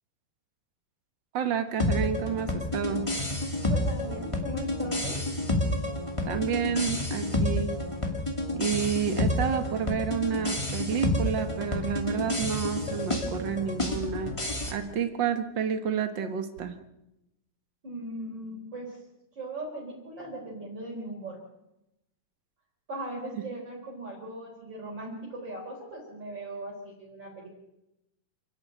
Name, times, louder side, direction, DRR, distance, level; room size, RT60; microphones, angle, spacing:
voice 1, 1.3-3.2 6.2-7.8 8.5-14.4 14.7-16.8 23.4-23.5, right 7 dB, 55° right, 7 dB, 1.3 m, -30 dB
sound 1, 1.8-14.7, left 1 dB, 10° left, 2.0 m, -29 dB
voice 2, 3.7-5.3 17.8-19.0 19.3-21.4 22.9-27.5, right 1 dB, 30° right, -3 dB, 4.8 m, -38 dB
28.5 x 11.0 x 8.9 m, 0.92 s
omnidirectional pair, 4.0 m